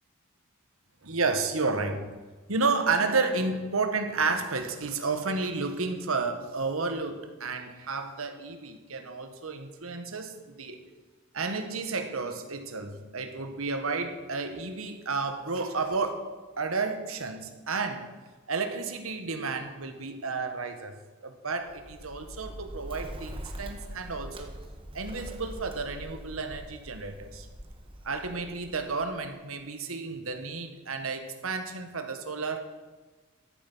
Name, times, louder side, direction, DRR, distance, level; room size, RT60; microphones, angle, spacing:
voice 1, 1.0-2.1 2.5-10.8 11.3-16.3 16.6-18.1 18.5-20.9 21.2-24.5 24.9-27.5 28.0-32.6, right 4 dB, 80° right, 7 dB, 1.6 m, -31 dB
Bird, 21.6-29.4, equal, 25° right, 1.3 m, -43 dB
13.0 x 9.1 x 6.2 m, 1.3 s
head